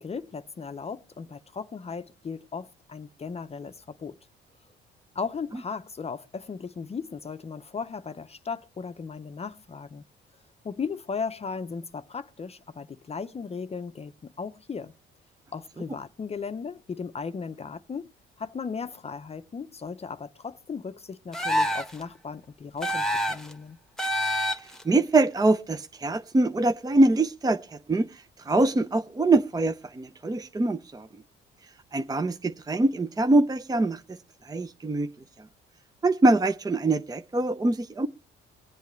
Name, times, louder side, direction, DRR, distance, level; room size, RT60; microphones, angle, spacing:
voice 1, 0.0-4.2 5.1-10.0 10.6-14.9 15.5-18.1 18.4-23.8, left 5 dB, 30° left, 0.6 m, -36 dB
sound 1, 21.3-22.0 22.8-23.5 24.0-24.8, equal, ahead, 1.3 m, -27 dB
voice 2, 24.8-31.1 31.9-34.2 34.4-35.1 36.0-38.1, right 2 dB, 20° right, 0.6 m, -24 dB
23.5 x 8.2 x 3.1 m
cardioid pair, 90°, 20 cm